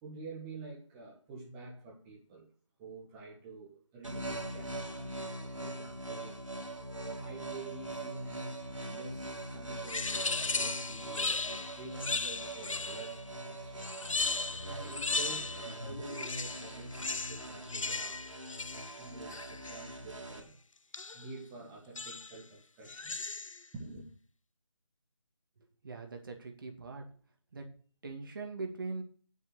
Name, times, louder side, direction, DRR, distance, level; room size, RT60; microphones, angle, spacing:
voice 1, 0.0-2.5 2.8-6.4 7.1-14.0 14.7-18.2 18.7-20.6 21.1-23.1 23.7-24.1, right 3 dB, 10° right, -3 dB, 1.5 m, -48 dB
sound 1, 4.0-20.4, right 1 dB, 85° right, 3.2 m, -42 dB
sound 2, 9.9-13.2 13.8-15.8 16.1-19.9 20.9-21.3 22.0-22.4 22.9-23.7, left 3 dB, 90° left, 0.6 m, -36 dB
voice 2, 25.8-27.0 27.5-27.7 28.0-29.0, right 3 dB, 40° right, 4 dB, 2.2 m, -41 dB
9.6 x 6.6 x 7.8 m, 0.43 s
figure-of-eight pair, 160°, 16 cm